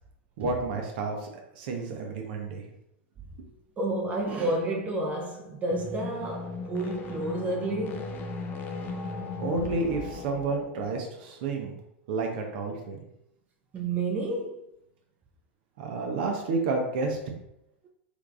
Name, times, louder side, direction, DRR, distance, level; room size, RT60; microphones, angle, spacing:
voice 1, 0.4-1.3 1.6-2.6 9.4-11.7 12.1-13.0 15.8-17.2, right 3 dB, 60° right, 0.7 m, -30 dB
voice 2, 3.8-8.1 12.3-12.4 13.7-14.7, right 2 dB, 25° right, 0.6 m, -31 dB
sound 1, 5.6-11.2, left 4 dB, 35° left, 0.5 m, -37 dB
3.3 x 3.3 x 2.5 m
hypercardioid pair, 95°, 6 cm